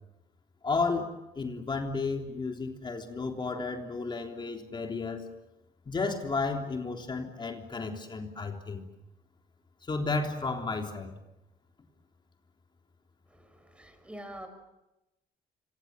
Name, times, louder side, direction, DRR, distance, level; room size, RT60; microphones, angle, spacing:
voice 1, 0.6-5.3 5.9-8.9 9.8-11.2, left 4 dB, 25° left, 3 dB, 3.4 m, -33 dB
voice 2, 13.3-14.5, right 1 dB, 5° right, 8 dB, 5.8 m, -46 dB
26.5 x 26.5 x 7.5 m, 0.95 s
cardioid pair, 110°, 17 cm